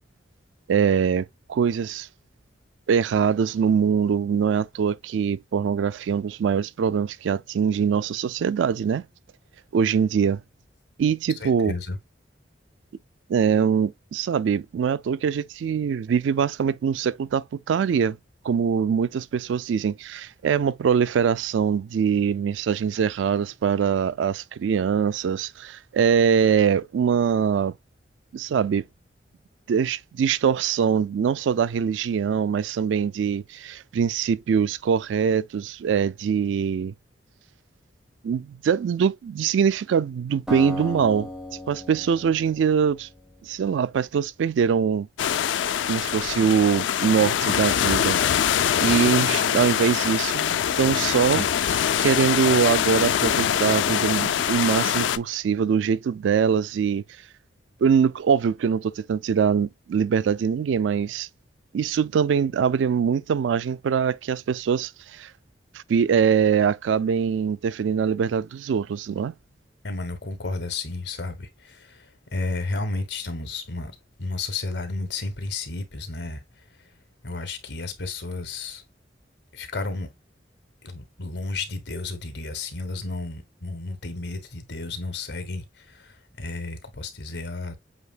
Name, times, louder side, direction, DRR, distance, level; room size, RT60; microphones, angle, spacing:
voice 1, 0.7-2.1 2.9-9.1 9.7-10.4 11.0-11.7 13.3-18.2 18.4-27.7 28.3-28.8 29.7-36.9 38.2-41.3 41.7-43.1 43.4-45.1 45.9-48.2 48.8-57.0 57.8-61.3 61.7-65.3 65.7-69.3, right 7 dB, 90° right, 0.3 m, -23 dB
voice 2, 11.4-12.0 69.8-76.9 77.2-78.8 79.5-80.1 80.8-87.7, left 3 dB, 65° left, 1.3 m, -32 dB
Acoustic guitar, 40.5-43.6, equal, 5° right, 1.4 m, -36 dB
sound 1, 45.2-55.2, left 9 dB, 85° left, 0.4 m, -23 dB
8.0 x 2.8 x 2.3 m
head